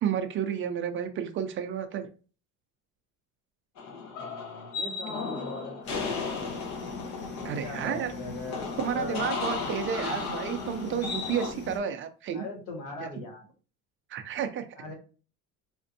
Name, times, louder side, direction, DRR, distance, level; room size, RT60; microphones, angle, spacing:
voice 1, 0.0-2.1 7.4-8.1 8.8-12.4 14.1-14.6, right 8 dB, 40° right, 7 dB, 0.5 m, -31 dB
sound 1, 3.8-11.5, left 4 dB, 60° left, 0.9 m, -35 dB
voice 2, 4.1-6.6 7.6-9.2 9.5-10.3 12.3-13.5 14.8-14.9, left 3 dB, 75° left, 1 dB, 1.5 m, -41 dB
sound 2, 5.8-11.8, left 3 dB, 35° left, 0.8 m, -40 dB
4.2 x 2.6 x 2.6 m, 0.36 s
cardioid pair, 155°, 32 cm